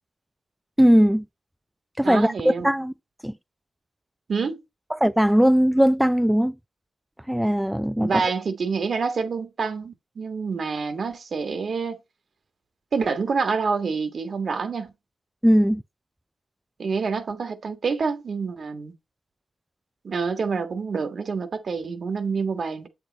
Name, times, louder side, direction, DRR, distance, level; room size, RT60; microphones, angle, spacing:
voice 1, 0.8-1.2 2.0-2.9 3.2-3.3 4.9-6.5 7.3-8.2 15.4-15.8, equal, 5° right, 0.5 m, -19 dB
voice 2, 2.0-2.7 4.3-4.6 8.0-12.0 12.9-14.9 16.8-18.9 20.0-22.9, right 5 dB, 65° right, 1.6 m, -27 dB
7.8 x 6.7 x 4.1 m
cardioid pair, 50°, 0 cm